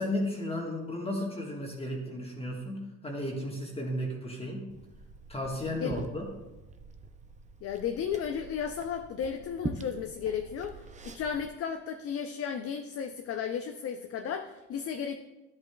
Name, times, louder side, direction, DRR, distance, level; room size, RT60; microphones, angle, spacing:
voice 1, 0.0-4.7 5.3-6.3, left 1 dB, 15° left, -1 dB, 1.4 m, -34 dB
Liquid, 4.7-11.5, right 4 dB, 20° right, 0.6 m, -44 dB
voice 2, 7.6-15.2, left 7 dB, 45° left, 6 dB, 0.5 m, -34 dB
10.5 x 7.9 x 2.2 m, 1.1 s
supercardioid pair, 90°, 34 cm